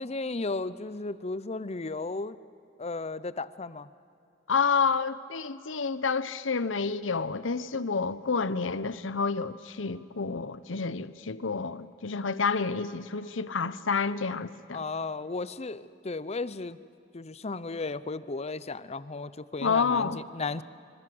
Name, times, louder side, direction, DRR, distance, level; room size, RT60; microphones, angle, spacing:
voice 1, 0.0-2.4 2.8-3.9 14.7-16.8 17.1-20.6, left 3 dB, 35° left, 0.7 m, -34 dB
voice 2, 4.5-14.8 19.6-20.2, left 5 dB, 85° left, 0.9 m, -29 dB
25.5 x 25.5 x 7.9 m
head